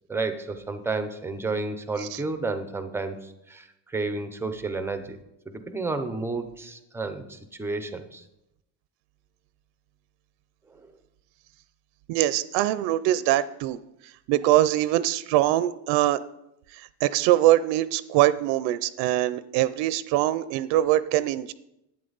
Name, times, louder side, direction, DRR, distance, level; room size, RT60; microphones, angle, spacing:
voice 1, 0.1-5.2 5.5-8.2 10.7-10.9, right 3 dB, 5° right, 9 dB, 0.5 m, -31 dB
voice 2, 12.1-13.8 14.3-16.2 17.0-21.5, right 14 dB, 85° right, 15 dB, 0.6 m, -23 dB
11.0 x 8.9 x 3.9 m, 0.85 s
cardioid pair, 170°, 42 cm